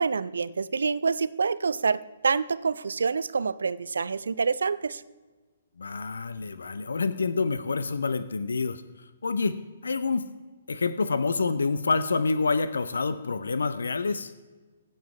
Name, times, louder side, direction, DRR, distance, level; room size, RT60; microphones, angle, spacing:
voice 1, 0.0-5.0, right 5 dB, 70° right, 18 dB, 0.3 m, -27 dB
voice 2, 5.8-8.8 9.2-9.6 9.8-10.2 10.7-14.3, left 4 dB, 70° left, 12 dB, 0.5 m, -27 dB
16.0 x 5.5 x 4.7 m, 1.3 s
figure-of-eight pair, 125°, 0 cm